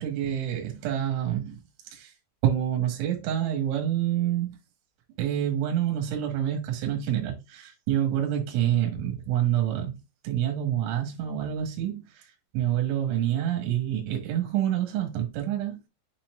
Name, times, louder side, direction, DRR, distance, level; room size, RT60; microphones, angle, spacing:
voice 1, 0.0-1.6 1.9-2.1 2.4-4.6 5.2-10.0 10.2-12.3 12.5-15.8, right 11 dB, 70° right, 4.0 m, -27 dB
10.0 x 4.4 x 2.5 m
omnidirectional pair, 5.8 m